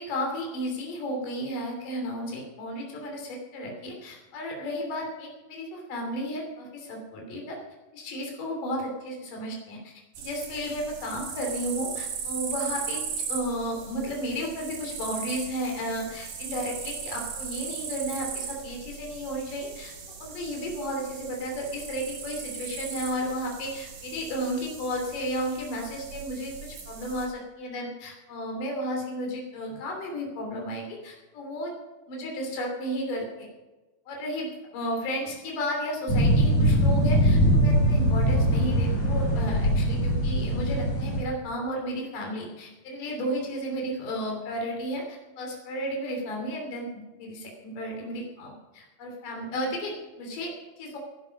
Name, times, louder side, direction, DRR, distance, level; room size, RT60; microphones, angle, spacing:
voice 1, 0.0-7.6 7.9-13.0 13.3-19.9 20.2-31.7 32.1-33.5 34.1-51.0, equal, 70° left, 0 dB, 4.7 m, -33 dB
sound 1, 10.1-27.3, right 6 dB, 75° right, 4.2 m, -38 dB
sound 2, 36.1-41.2, equal, 50° left, 4.5 m, -22 dB
16.0 x 11.5 x 5.4 m, 1.1 s
omnidirectional pair, 3.9 m